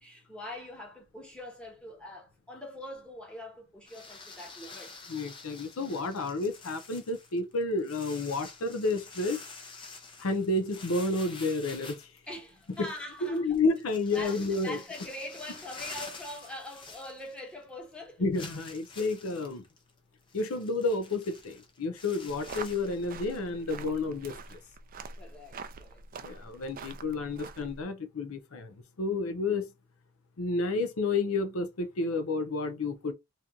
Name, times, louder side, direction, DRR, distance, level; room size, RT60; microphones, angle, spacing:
voice 1, 0.0-5.0 12.3-13.5 14.1-18.3 25.1-26.4, left 1 dB, 5° left, 1.2 m, -43 dB
sound 1, 3.9-17.6 17.9-18.0 18.3-23.5, left 4 dB, 25° left, 0.7 m, -48 dB
voice 2, 5.1-9.4 10.2-12.0 12.8-12.9 13.2-14.8 18.2-19.6 20.3-24.6 26.2-29.7 30.4-33.1, left 3 dB, 80° left, 0.6 m, -30 dB
sound 2, 22.3-27.8, right 4 dB, 40° right, 0.4 m, -45 dB
3.0 x 2.6 x 3.6 m
head